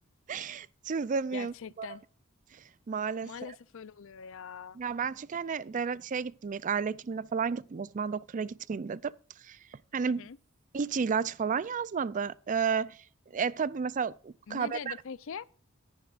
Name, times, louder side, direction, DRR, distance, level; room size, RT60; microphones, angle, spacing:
voice 1, 0.3-1.9 2.9-3.3 4.8-9.1 9.5-9.6 9.9-10.2 10.7-13.0 13.3-15.0, right 6 dB, 35° right, 0.4 m, -32 dB
voice 2, 1.3-2.0 3.2-4.8 5.7-5.8 10.0-10.4 14.5-15.5, left 6 dB, 65° left, 0.5 m, -43 dB
16.5 x 10.5 x 2.5 m
head